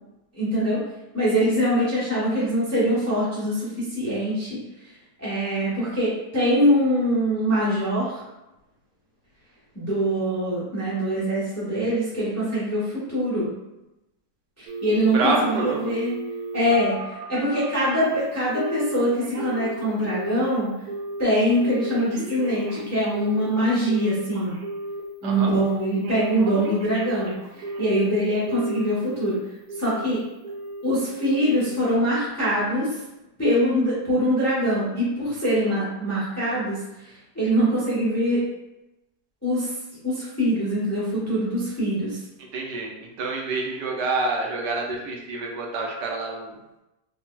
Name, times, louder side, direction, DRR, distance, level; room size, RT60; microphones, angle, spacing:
voice 1, 0.4-0.8 1.1-4.6 5.2-8.2 9.7-13.5 14.6-16.2 16.5-17.0 17.3-20.7 21.2-24.5 25.2-27.4 27.8-29.4 29.8-30.2 30.8-33.0 33.4-36.8 37.3-38.4 39.4-39.7 40.0-42.2, equal, 25° left, -8 dB, 0.4 m, -23 dB
Telephone, 14.7-17.9 18.5-18.9 19.2-20.6 20.9-21.3 21.6-25.0 25.4-25.8 26.0-28.1 28.5-29.3 29.7-30.1 30.4-30.8 31.2-31.6 31.9-32.0, right 2 dB, 70° right, 1.1 m, -34 dB
voice 2, 15.1-16.0 25.2-25.5 42.5-46.6, right 3 dB, 90° right, 0 dB, 1.2 m, -27 dB
3.9 x 2.0 x 2.2 m, 0.95 s
omnidirectional pair, 1.8 m